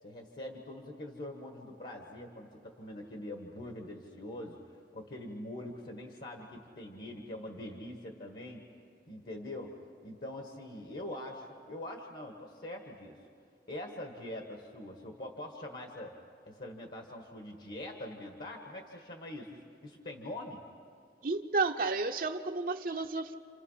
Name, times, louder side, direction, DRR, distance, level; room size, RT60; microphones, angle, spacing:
voice 1, 0.0-8.6 9.1-13.2 13.7-16.2 16.5-20.6, left 1 dB, 55° left, 2 dB, 1.7 m, -44 dB
voice 2, 21.2-23.4, right 3 dB, 50° right, 5 dB, 0.7 m, -32 dB
29.5 x 28.0 x 5.8 m, 2.4 s
head